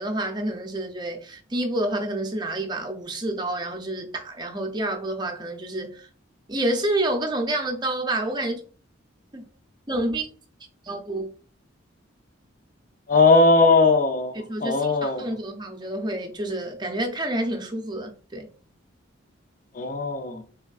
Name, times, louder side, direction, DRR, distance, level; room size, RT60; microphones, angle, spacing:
voice 1, 0.0-6.1 6.5-8.6 9.3-9.4 9.9-10.3 10.8-11.3 14.5-18.5, right 1 dB, 20° right, 0.5 m, -28 dB
voice 2, 13.1-15.3 19.7-20.4, left 3 dB, 40° left, 0.4 m, -19 dB
3.4 x 3.4 x 2.3 m
head